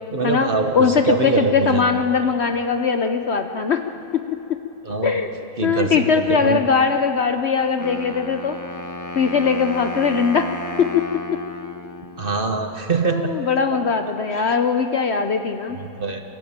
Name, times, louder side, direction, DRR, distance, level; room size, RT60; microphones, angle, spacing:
voice 1, 0.1-1.8 4.8-5.2 5.6-6.6 12.2-13.3 14.3-14.6 15.7-16.2, right 4 dB, 40° right, 5 dB, 1.3 m, -24 dB
voice 2, 0.7-3.8 4.1-4.2 5.0-5.3 5.6-8.6 9.1-10.5 10.8-11.0 13.1-15.8, left 5 dB, 55° left, 7 dB, 0.9 m, -20 dB
Wind instrument woodwind instrument, 7.8-12.7, left 1 dB, 20° left, 0.5 m, -33 dB
24.0 x 15.0 x 8.8 m, 3.0 s
omnidirectional pair, 1.5 m